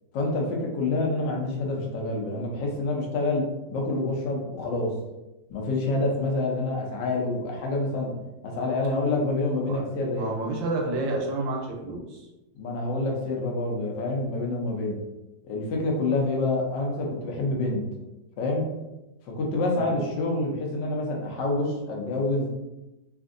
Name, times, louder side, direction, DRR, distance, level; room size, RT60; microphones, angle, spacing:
voice 1, 0.1-3.4 3.7-4.9 5.5-8.1 8.4-10.3 12.6-15.0 15.4-17.8 18.4-18.7 19.4-22.5, left 2 dB, 75° left, -1 dB, 1.3 m, -27 dB
voice 2, 10.1-12.2 19.7-19.9, right 2 dB, 80° right, 0 dB, 1.4 m, -30 dB
3.5 x 2.5 x 2.5 m, 0.99 s
omnidirectional pair, 2.0 m